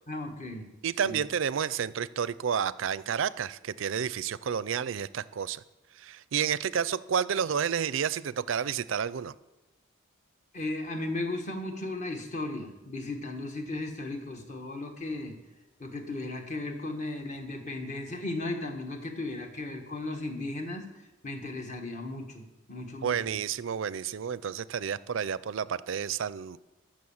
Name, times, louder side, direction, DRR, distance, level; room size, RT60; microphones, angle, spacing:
voice 1, 0.1-0.7 1.0-1.2 10.5-15.4 15.8-23.4, left 2 dB, 35° left, 4 dB, 1.5 m, -36 dB
voice 2, 0.8-5.6 6.0-9.3 23.0-26.6, right 7 dB, 70° right, 18 dB, 0.4 m, -30 dB
14.0 x 6.3 x 7.2 m, 1.0 s
head